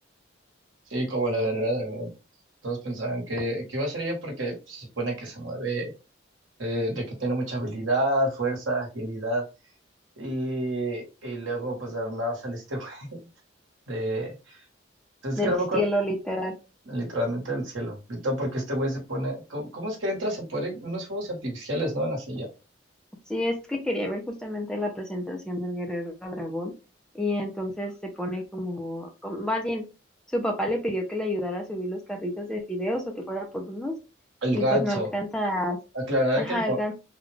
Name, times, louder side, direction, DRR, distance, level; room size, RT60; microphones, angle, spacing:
voice 1, 0.9-2.1 2.6-5.9 6.6-9.4 10.2-13.3 13.9-14.6 15.2-15.8 16.9-22.5 34.4-35.1 35.9-36.9, right 1 dB, 85° right, 0 dB, 1.6 m, -29 dB
voice 2, 15.4-16.5 23.3-26.7 27.1-27.9 28.2-29.8 30.3-33.9 34.5-35.8 36.4-36.9, left 1 dB, 5° left, 2 dB, 0.6 m, -29 dB
3.8 x 2.5 x 3.3 m, 0.30 s
head